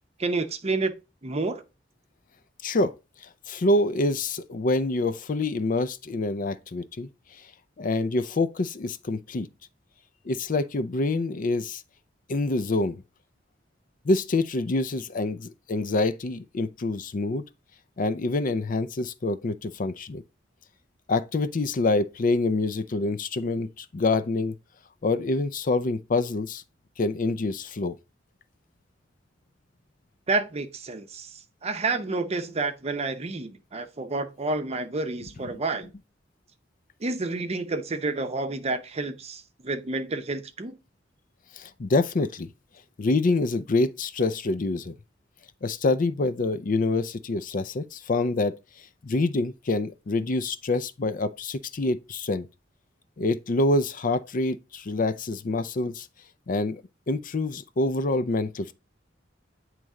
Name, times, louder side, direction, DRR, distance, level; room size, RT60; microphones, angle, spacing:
voice 1, 0.2-0.9 1.2-1.6 30.3-31.3 31.6-35.9 37.0-40.8, right 3 dB, 35° right, 0.7 m, -29 dB
voice 2, 3.5-7.1 7.8-9.5 10.3-11.8 12.3-13.0 14.1-17.4 18.0-20.2 21.1-24.6 25.0-26.6 27.0-27.9 35.5-35.6 41.6-42.5 43.0-44.9 45.6-48.6 49.0-52.5 53.2-56.1 56.5-56.8 57.1-58.7, left 2 dB, 45° left, 0.5 m, -26 dB
9.0 x 3.2 x 3.6 m
head